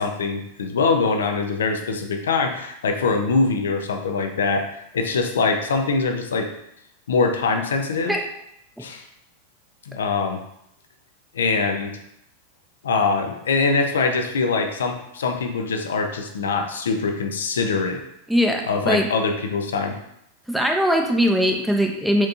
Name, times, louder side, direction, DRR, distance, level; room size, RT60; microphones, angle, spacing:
voice 1, 0.0-4.7 4.9-6.5 7.1-8.2 8.8-9.1 9.9-10.4 11.3-12.0 12.8-18.0 18.7-20.0, left 4 dB, 65° left, 5 dB, 0.5 m, -23 dB
voice 2, 18.3-19.1 20.5-22.3, equal, ahead, 2 dB, 0.6 m, -20 dB
4.4 x 3.6 x 2.7 m, 0.79 s
figure-of-eight pair, 90°, 0 cm